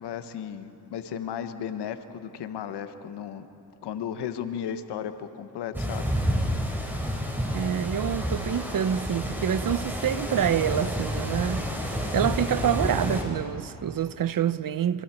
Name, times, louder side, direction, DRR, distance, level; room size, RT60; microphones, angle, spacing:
voice 1, 0.0-3.5 3.8-6.1, left 8 dB, 85° left, 1.2 m, -35 dB
sound 1, 5.7-13.2, equal, 5° right, 4.9 m, -29 dB
voice 2, 7.5-11.7 12.1-15.0, right 9 dB, 55° right, 0.8 m, -27 dB
26.5 x 25.0 x 4.5 m
cardioid pair, 70°, 39 cm